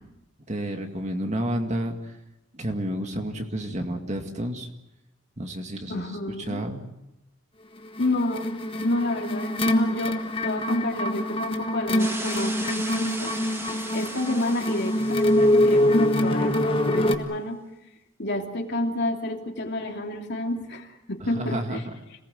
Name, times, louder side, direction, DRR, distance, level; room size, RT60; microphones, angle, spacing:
voice 1, 0.5-2.1 2.5-4.7 5.4-6.9 21.2-21.8, equal, 35° right, 4 dB, 2.1 m, -30 dB
voice 2, 5.9-6.6 8.0-13.3 13.7-17.6 18.2-21.8, left 1 dB, 55° left, 2 dB, 3.0 m, -29 dB
sound 1, 8.0-17.2, left 1 dB, 25° left, 1.5 m, -24 dB
sound 2, 12.0-16.2, right 2 dB, 10° right, 2.0 m, -37 dB
26.5 x 19.0 x 7.9 m, 0.92 s
head